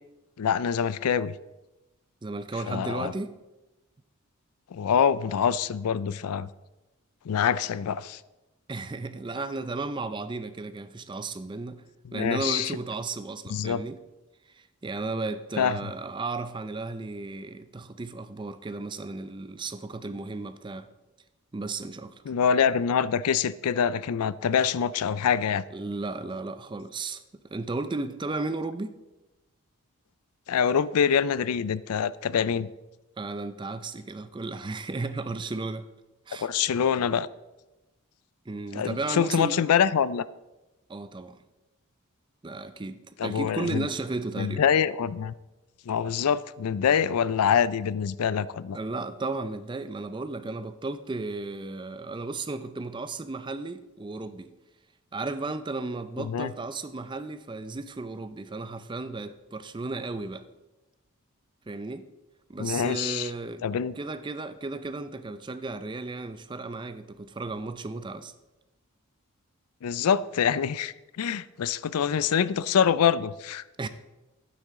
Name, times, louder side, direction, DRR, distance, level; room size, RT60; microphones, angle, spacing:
voice 1, 0.4-1.3 2.7-3.1 4.7-6.5 7.3-8.2 12.1-12.7 13.5-13.8 15.6-15.7 22.3-25.6 30.5-32.7 36.4-37.3 38.7-40.2 43.2-43.9 44.4-45.3 45.9-48.8 56.2-56.5 62.6-63.3 63.6-63.9 69.8-73.6, left 7 dB, 80° left, 0.4 m, -25 dB
voice 2, 2.2-3.4 8.7-11.8 12.1-14.0 14.5-20.9 21.5-22.2 25.7-28.9 33.2-35.9 36.3-36.5 38.5-39.6 40.9-41.4 42.4-44.6 48.7-54.5 55.1-60.5 61.7-62.1 62.5-63.6 64.0-68.3 73.8-73.9, right 3 dB, 20° right, 0.4 m, -34 dB
12.0 x 9.4 x 3.6 m
head